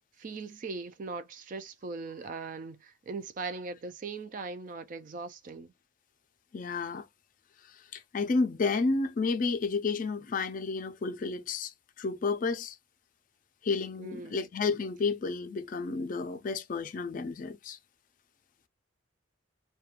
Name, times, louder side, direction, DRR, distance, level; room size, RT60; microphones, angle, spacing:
voice 1, 0.2-5.7 14.0-14.5, right 4 dB, 40° right, 0.4 m, -40 dB
voice 2, 6.5-7.1 7.7-12.8 13.6-17.8, left 4 dB, 45° left, 0.3 m, -31 dB
2.9 x 2.2 x 2.4 m
head